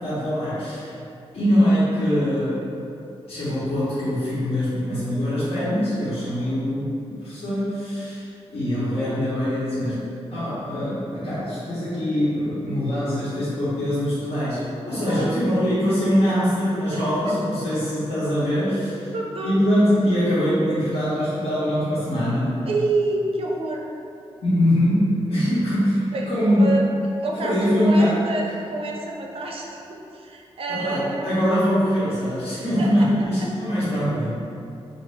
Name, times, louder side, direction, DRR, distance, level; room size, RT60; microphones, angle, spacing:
voice 1, 0.0-0.9 1.3-2.6 3.3-8.2 8.5-10.0 10.3-19.1 19.4-22.5 24.4-26.7 27.4-28.2 30.7-34.3, equal, 65° left, -13 dB, 1.4 m, -23 dB
voice 2, 19.1-19.7 22.6-23.9 26.1-26.8 27.2-31.3 32.6-33.1 33.4-33.5, right 2 dB, 60° right, -1 dB, 0.6 m, -28 dB
4.4 x 2.8 x 3.5 m, 2.6 s
wide cardioid pair, 135°, 11 cm